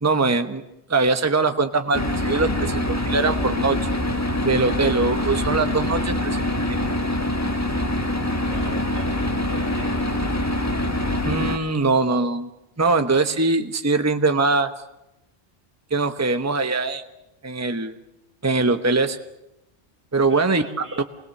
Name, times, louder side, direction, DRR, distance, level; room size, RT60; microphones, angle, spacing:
voice 1, 0.0-0.6 0.9-3.9 4.4-6.8 11.2-12.5 12.8-14.7 15.9-17.0 17.4-18.0 18.4-19.2 20.1-20.6 21.0-21.1, right 3 dB, 15° right, 8 dB, 1.0 m, -22 dB
sound 1, 1.9-11.6, left 1 dB, 15° left, 1.4 m, -24 dB
voice 2, 8.5-10.3 20.3-21.0, right 1 dB, 80° right, 3 dB, 3.5 m, -42 dB
27.5 x 21.0 x 6.7 m, 0.90 s
omnidirectional pair, 1.1 m